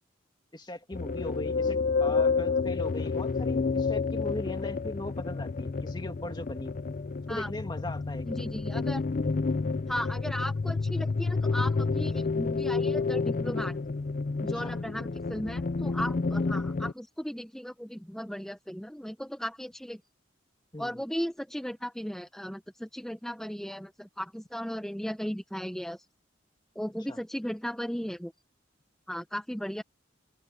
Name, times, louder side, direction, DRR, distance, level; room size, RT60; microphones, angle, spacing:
voice 1, 0.5-6.8 7.3-8.3 14.6-14.8 20.7-21.0 27.1-27.2, left 1 dB, 25° left, 2.0 m, -39 dB
sound 1, 0.9-16.9, left 4 dB, 45° left, 0.5 m, -29 dB
voice 2, 8.2-9.0 9.9-13.8 14.4-20.0 20.8-26.0 26.8-28.3 29.1-29.8, equal, 5° left, 0.6 m, -36 dB
head